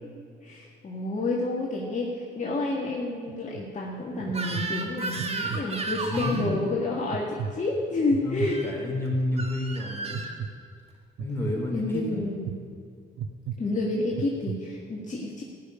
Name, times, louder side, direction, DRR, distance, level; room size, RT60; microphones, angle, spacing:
voice 1, 0.4-8.6 11.7-12.6 13.6-15.4, left 2 dB, 40° left, -3 dB, 1.9 m, -29 dB
sound 1, 3.3-3.6 4.2-4.7 5.2-5.6 6.1-6.6 7.1-7.5 8.1-8.5 9.1-9.5 10.1-10.5 11.2-11.5 12.2-12.5 13.2-13.6 14.1-14.6, right 7 dB, 65° right, 0.8 m, -33 dB
Crying sobbing / Screech, 4.3-6.5 8.4-8.7 9.4-10.4, right 3 dB, 30° right, 1.7 m, -33 dB
voice 2, 6.1-6.6 8.2-10.2 11.2-12.3, left 1 dB, 10° left, -2 dB, 4.5 m, -30 dB
14.5 x 6.9 x 9.5 m, 2.2 s
cardioid pair, 90°, 20 cm